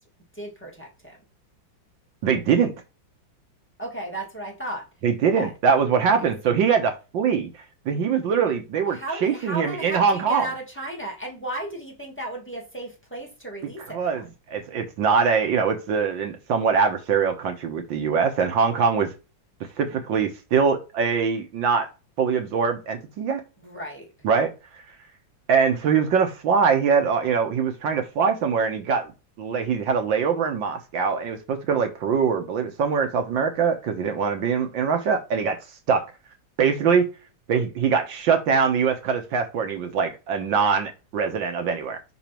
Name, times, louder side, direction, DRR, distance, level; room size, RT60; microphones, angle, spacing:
voice 1, 0.3-1.2 3.8-4.9 5.3-5.5 6.2-6.4 8.9-14.2 23.6-24.1, right 1 dB, 5° left, 2.0 m, -35 dB
voice 2, 2.2-2.7 5.0-10.5 13.9-19.1 19.8-21.9 22.2-23.4 24.2-24.5 25.5-29.1 29.4-35.6 35.9-36.0 36.6-37.1 37.5-42.0, right 6 dB, 75° right, 1.8 m, -23 dB
5.9 x 4.0 x 4.4 m
omnidirectional pair, 2.1 m